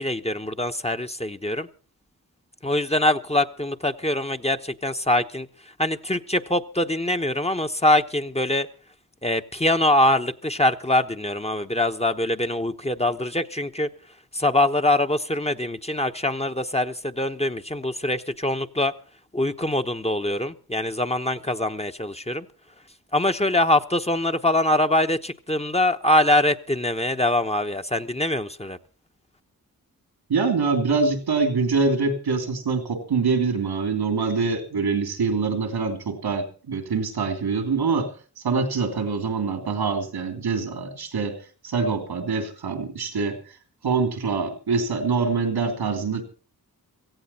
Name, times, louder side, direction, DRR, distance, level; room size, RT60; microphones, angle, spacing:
voice 1, 0.0-1.7 2.6-5.5 5.8-8.7 9.2-13.9 14.3-18.9 19.3-22.5 23.1-28.8, left 1 dB, 15° left, 7 dB, 1.0 m, -23 dB
voice 2, 30.3-38.1 38.4-41.4 41.6-43.4 43.8-46.2, right 4 dB, 85° right, 7 dB, 2.9 m, -24 dB
17.0 x 15.0 x 4.3 m, 0.36 s
cardioid pair, 45°, 37 cm